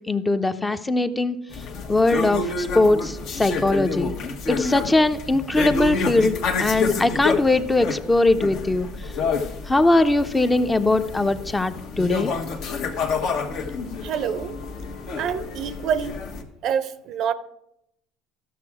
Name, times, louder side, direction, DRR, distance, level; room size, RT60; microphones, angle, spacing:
voice 1, 0.1-1.4 1.9-4.1 4.5-8.9 9.7-12.3, left 2 dB, 15° left, 0.7 m, -21 dB
sound 1, 1.5-16.4, left 4 dB, 65° left, 1.3 m, -29 dB
voice 2, 14.0-14.6 15.2-16.2 16.6-17.3, right 8 dB, 55° right, 0.6 m, -26 dB
12.5 x 6.1 x 4.8 m
supercardioid pair, 90°, 0 cm